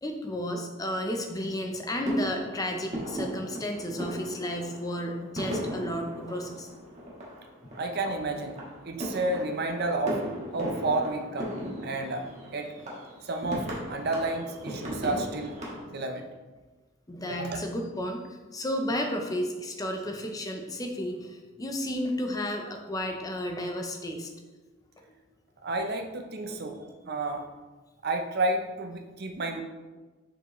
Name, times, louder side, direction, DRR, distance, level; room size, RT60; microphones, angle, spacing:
voice 1, 0.0-6.7 17.1-24.3 25.0-25.1 26.5-26.7, equal, 20° left, 3 dB, 0.5 m, -32 dB
sound 1, 0.9-1.5 2.0-15.8, equal, 35° right, 1.3 m, -37 dB
voice 2, 7.8-8.6 8.9-10.2 10.5-11.6 11.8-12.2 12.5-12.7 13.2-15.6 15.9-16.3 17.3-17.6 25.6-27.4 28.0-29.6, right 2 dB, 50° right, 4 dB, 0.6 m, -31 dB
6.6 x 4.6 x 3.0 m, 1.3 s
head